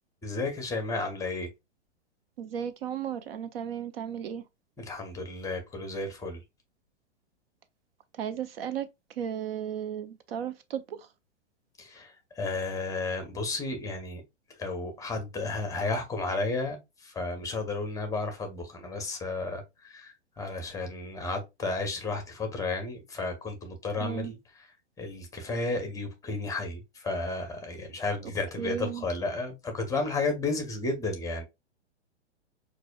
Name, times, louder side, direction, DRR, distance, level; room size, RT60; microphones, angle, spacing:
voice 1, 0.2-1.5 4.8-6.4 11.8-14.2 14.6-16.8 17.0-24.7 25.0-31.4, left 3 dB, 10° left, 0.8 m, -33 dB
voice 2, 2.4-4.4 8.2-8.9 9.2-11.1 24.0-24.3 28.6-29.0, right 8 dB, 55° right, 0.6 m, -34 dB
5.9 x 2.6 x 2.2 m
hypercardioid pair, 120°, 35 cm